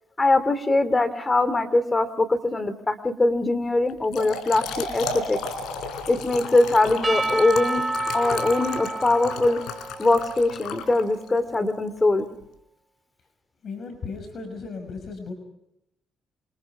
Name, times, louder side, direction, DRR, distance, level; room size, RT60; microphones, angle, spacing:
voice 1, 0.2-5.4 6.1-7.9 8.1-9.6 10.0-12.3, left 2 dB, 25° left, 13 dB, 2.8 m, -22 dB
Trickle dribble / Fill (with liquid), 3.9-11.4, left 4 dB, 85° left, 4.2 m, -34 dB
Percussion / Church bell, 7.0-11.4, right 2 dB, 20° right, 0.9 m, -30 dB
voice 2, 13.6-15.3, left 4 dB, 55° left, 7 dB, 5.9 m, -35 dB
27.5 x 27.0 x 4.9 m, 0.80 s
cardioid pair, 90°, 0 cm